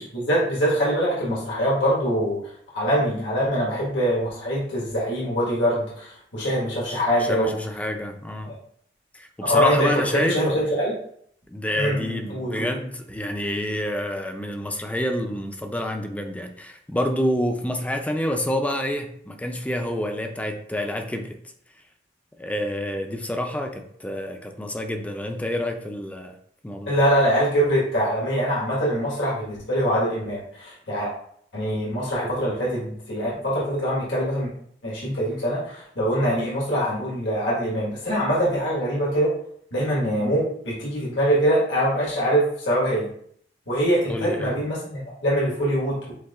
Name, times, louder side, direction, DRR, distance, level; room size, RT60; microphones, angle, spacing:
voice 1, 0.0-2.4 2.7-7.6 8.4-8.6 9.4-10.9 11.7-12.7 26.9-31.1 31.5-34.5 34.8-39.3 39.7-43.1 43.7-46.1, equal, 80° left, -6 dB, 1.5 m, -23 dB
voice 2, 6.9-8.5 9.1-10.4 11.5-21.4 22.4-26.4 26.6-27.0 44.1-44.6, left 1 dB, 10° left, 4 dB, 0.4 m, -28 dB
7.7 x 2.6 x 2.4 m, 0.64 s
head